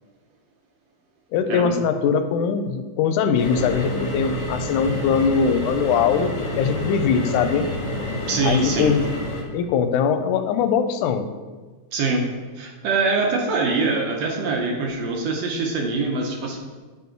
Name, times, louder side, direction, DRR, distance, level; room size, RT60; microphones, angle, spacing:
voice 1, 1.3-7.7 8.4-9.1 9.5-11.3, left 6 dB, 90° left, 8 dB, 2.1 m, -21 dB
sound 1, 3.4-9.4, left 1 dB, 40° left, 1.2 m, -29 dB
voice 2, 8.3-8.9 11.9-16.6, right 3 dB, 65° right, 1 dB, 1.9 m, -24 dB
9.1 x 5.4 x 4.5 m, 1.3 s
omnidirectional pair, 3.5 m